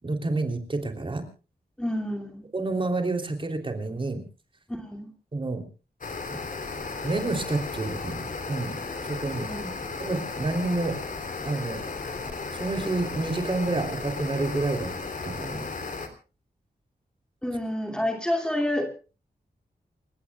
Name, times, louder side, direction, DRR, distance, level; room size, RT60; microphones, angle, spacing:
voice 1, 0.0-1.2 2.5-4.2 5.3-5.7 6.3-6.4 7.0-8.8 9.0-9.5 10.0-11.0 11.4-11.8 12.5-14.9 15.2-15.7, right 2 dB, 30° right, 5 dB, 3.3 m, -29 dB
voice 2, 1.8-2.4 4.7-5.1 9.5-9.7 17.4-18.9, left 1 dB, 5° left, 3 dB, 2.5 m, -29 dB
sound 1, 6.0-16.1, left 4 dB, 50° left, 3.2 m, -35 dB
29.0 x 17.0 x 2.3 m, 0.34 s
wide cardioid pair, 180°, 17 cm